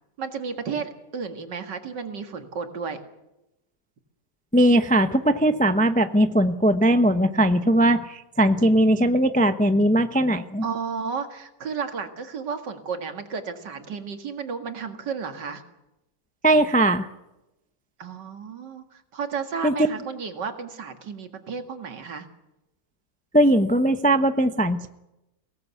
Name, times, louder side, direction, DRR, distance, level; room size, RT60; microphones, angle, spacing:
voice 1, 0.2-3.0 10.6-15.6 18.0-22.3, right 5 dB, 85° right, 7 dB, 2.5 m, -33 dB
voice 2, 4.5-10.6 16.4-17.1 19.6-19.7 23.3-24.9, right 1 dB, 10° left, 10 dB, 0.4 m, -19 dB
23.0 x 17.5 x 8.3 m, 0.94 s
omnidirectional pair, 1.8 m